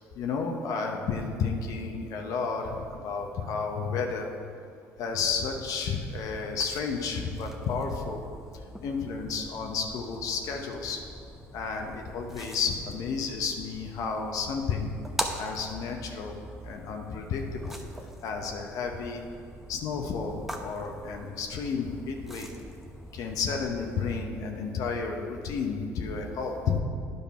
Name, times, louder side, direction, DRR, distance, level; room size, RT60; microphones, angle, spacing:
voice 1, 0.1-4.3 5.0-8.2 8.8-11.0 11.5-14.9 15.4-16.3 16.6-17.8 18.2-19.2 19.7-22.5 23.1-26.8, left 5 dB, 65° left, 2 dB, 0.9 m, -32 dB
sound 1, 6.1-24.2, equal, 5° right, 0.9 m, -42 dB
9.5 x 5.3 x 5.6 m, 2.4 s
supercardioid pair, 75°, 6 cm